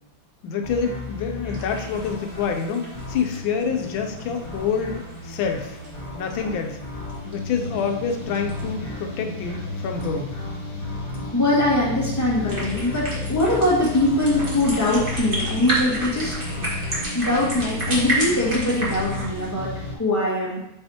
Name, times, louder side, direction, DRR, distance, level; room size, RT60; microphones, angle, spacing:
voice 1, 0.4-5.8 6.2-6.8 7.3-10.3, left 6 dB, 85° left, 4 dB, 1.4 m, -27 dB
sound 1, 0.6-20.0, left 2 dB, 45° left, 2.6 m, -33 dB
sound 2, 1.4-8.8 12.2-19.5, right 1 dB, 30° right, 1.8 m, -32 dB
voice 2, 11.3-16.3 17.1-19.7 20.0-20.6, left 1 dB, 10° left, -6 dB, 1.7 m, -22 dB
7.0 x 5.6 x 2.8 m, 0.86 s
omnidirectional pair, 2.1 m